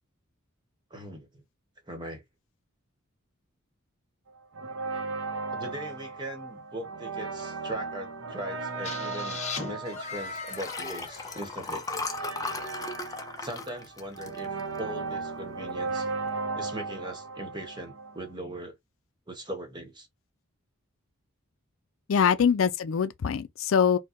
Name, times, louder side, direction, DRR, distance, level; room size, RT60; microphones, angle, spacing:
voice 1, 0.9-1.4 1.9-2.2 5.5-11.8 13.4-14.5 14.8-16.1 16.5-18.8 19.3-20.1, right 1 dB, 20° right, 1.1 m, -39 dB
sound 1, 4.5-18.3, right 4 dB, 70° right, 0.7 m, -36 dB
sound 2, 8.8-12.6, left 4 dB, 35° left, 1.1 m, -39 dB
Liquid, 10.4-15.0 15.5-15.8 16.0-16.1, left 3 dB, 15° left, 0.5 m, -37 dB
voice 2, 22.1-24.0, left 7 dB, 70° left, 0.4 m, -23 dB
4.5 x 2.2 x 2.9 m
head